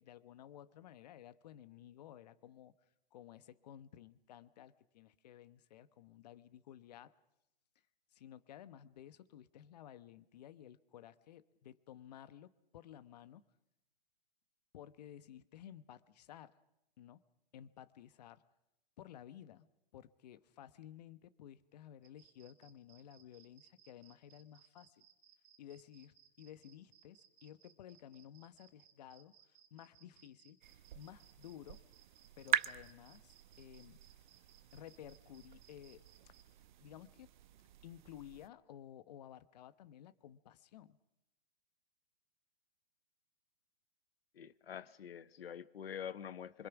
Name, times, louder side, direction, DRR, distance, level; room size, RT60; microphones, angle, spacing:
voice 1, 0.0-2.7 3.1-7.1 8.1-13.4 14.7-16.6 17.0-17.2 17.5-18.4 19.0-19.7 19.9-25.0 25.6-31.8 32.4-34.0 34.7-36.4 36.8-37.3 37.8-41.0, left 11 dB, 45° left, 1.1 m, -55 dB
sound 1, 22.0-36.4, right 10 dB, 30° right, 2.5 m, -65 dB
sound 2, 30.6-38.5, right 11 dB, 50° right, 0.9 m, -43 dB
voice 2, 44.3-46.7, left 8 dB, 80° left, 1.2 m, -46 dB
26.0 x 24.5 x 6.0 m
hypercardioid pair, 155°, 30 cm